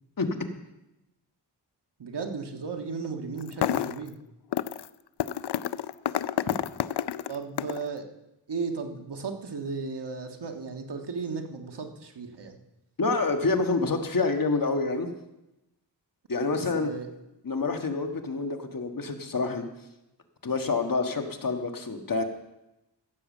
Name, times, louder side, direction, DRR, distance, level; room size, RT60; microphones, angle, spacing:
voice 1, 2.0-4.2 7.3-8.1 8.5-12.6 16.5-17.1, right 4 dB, 65° right, 4 dB, 1.7 m, -35 dB
sound 1, 3.4-4.1 4.5-4.9 5.2-7.9, left 11 dB, 65° left, 0.5 m, -29 dB
voice 2, 13.0-15.1 16.3-16.9 17.4-19.6 20.4-22.2, left 3 dB, 50° left, 5 dB, 1.5 m, -27 dB
16.0 x 7.1 x 7.3 m, 0.94 s
wide cardioid pair, 70°, 43 cm